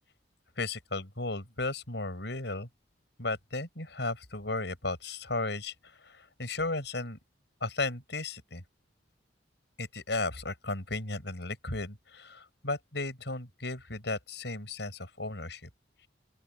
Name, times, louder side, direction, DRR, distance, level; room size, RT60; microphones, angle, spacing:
voice 1, 0.6-2.7 3.2-7.2 7.6-8.6 9.8-15.7, left 2 dB, 65° left, 7.6 m, -35 dB
open air
head